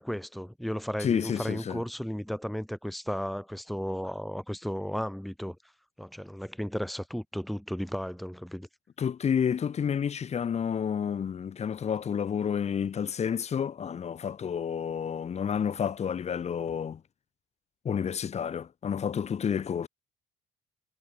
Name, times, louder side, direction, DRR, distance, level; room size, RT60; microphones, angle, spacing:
voice 1, 0.0-5.6 6.0-8.7, equal, ahead, 1.2 m, -34 dB
voice 2, 1.0-1.8 9.0-17.0 17.8-19.9, left 7 dB, 40° left, 2.1 m, -30 dB
cardioid pair, 110°, 17 cm